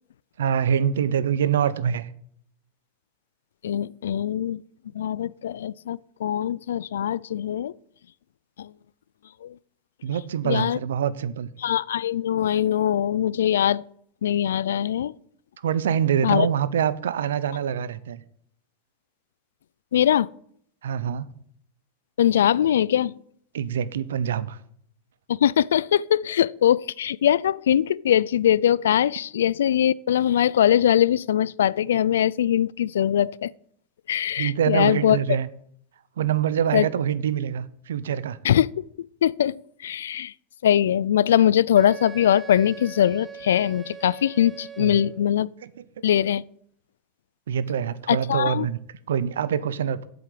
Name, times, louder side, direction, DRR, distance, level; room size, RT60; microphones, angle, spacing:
voice 1, 0.4-2.1 10.0-11.5 15.6-18.2 20.8-21.3 23.5-24.6 34.4-35.5 36.2-38.4 44.8-45.1 47.5-48.8 49.1-50.1, right 8 dB, 85° right, 0.8 m, -25 dB
voice 2, 3.6-4.6 4.9-7.7 8.6-8.7 9.4-9.5 10.4-10.8 11.6-13.8 14.2-15.1 16.2-16.5 19.9-20.3 22.2-23.2 25.3-33.5 34.1-35.2 36.7-36.9 38.4-38.7 39.2-40.3 40.6-45.5 46.0-46.4 48.1-48.7, left 10 dB, 85° left, 0.4 m, -22 dB
Wind instrument woodwind instrument, 41.7-45.3, right 7 dB, 20° right, 0.9 m, -41 dB
8.0 x 7.8 x 8.5 m
hypercardioid pair, 110°, 0 cm